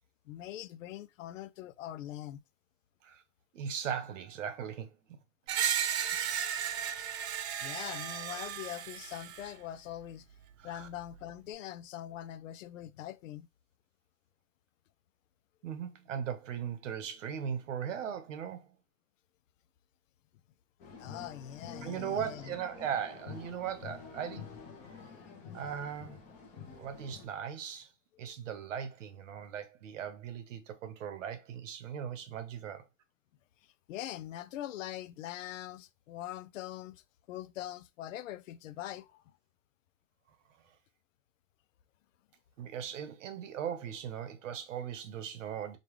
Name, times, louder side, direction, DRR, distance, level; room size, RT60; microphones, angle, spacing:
voice 1, 0.2-2.4 7.6-10.3 10.6-13.5 21.0-22.6 28.1-28.4 33.6-39.2, left 12 dB, 80° left, 0.6 m, -43 dB
voice 2, 3.5-5.2 10.6-10.9 15.6-18.7 21.8-24.5 25.5-26.3 26.8-27.9 28.2-32.9 42.6-45.8, right 8 dB, 75° right, 1.1 m, -38 dB
Screech, 5.5-9.5, right 9 dB, 60° right, 0.7 m, -34 dB
sound 1, 20.8-27.3, left 5 dB, 20° left, 0.7 m, -48 dB
5.2 x 2.3 x 3.1 m
supercardioid pair, 160°, 38 cm